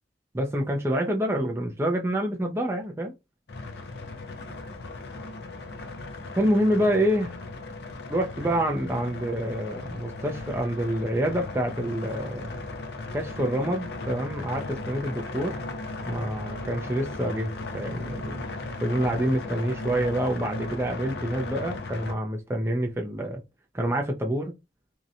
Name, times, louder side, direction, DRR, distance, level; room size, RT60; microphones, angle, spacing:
voice 1, 0.3-3.1 6.4-7.3 8.1-12.6 13.1-15.6 16.1-18.4 18.8-23.4 23.7-24.5, right 1 dB, 15° right, 0.4 m, -27 dB
sound 1, 3.5-22.1, left 2 dB, 65° left, 0.5 m, -37 dB
2.7 x 2.1 x 2.5 m
head